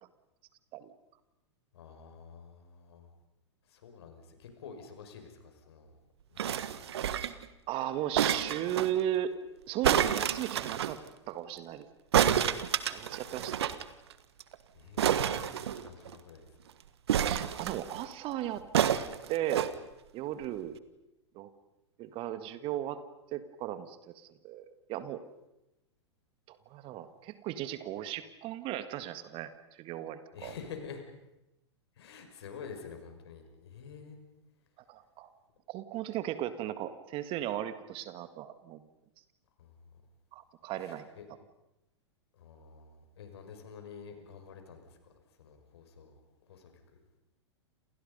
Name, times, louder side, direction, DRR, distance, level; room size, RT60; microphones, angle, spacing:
voice 1, 1.7-3.1 3.7-5.9 6.3-6.4 6.7-6.8 14.7-16.5 30.3-31.0 32.0-34.2 39.6-39.7 40.8-41.3 42.4-44.9 45.4-46.1 46.5-46.7, left 6 dB, 65° left, 5 dB, 6.0 m, -48 dB
sound 1, 6.4-7.5 8.2-8.9 9.8-10.9 12.1-13.8 14.1-14.2 14.4-14.6 15.0-16.2 17.1-18.0 18.7-19.7 20.4-20.5, right 9 dB, 65° right, 1.6 m, -29 dB
voice 2, 7.7-9.4 9.7-11.0 11.3-11.9 12.9-13.7 17.2-18.7 19.3-19.7 20.1-20.8 21.3-21.5 22.0-23.0 23.3-25.2 26.5-30.5 34.9-35.3 35.7-38.8 40.3-41.1, right 12 dB, 35° right, 11 dB, 1.9 m, -36 dB
29.0 x 28.5 x 5.4 m, 0.91 s
figure-of-eight pair, 100°, 15 cm